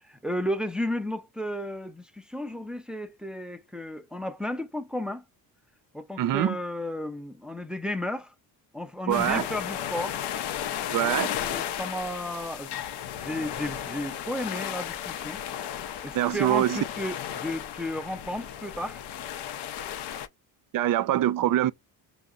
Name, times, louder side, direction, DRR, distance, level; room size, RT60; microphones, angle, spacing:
voice 1, 0.0-5.3 5.9-8.3 8.7-10.2 11.0-12.8 13.1-15.4 16.0-19.0, left 1 dB, ahead, 0.6 m, -33 dB
voice 2, 6.2-6.6 9.1-9.5 10.9-11.3 16.1-16.8 20.7-21.7, right 13 dB, 45° right, 0.5 m, -24 dB
sound 1, 9.1-20.3, left 10 dB, 60° left, 0.6 m, -34 dB
5.4 x 2.0 x 2.3 m
hypercardioid pair, 60°, 47 cm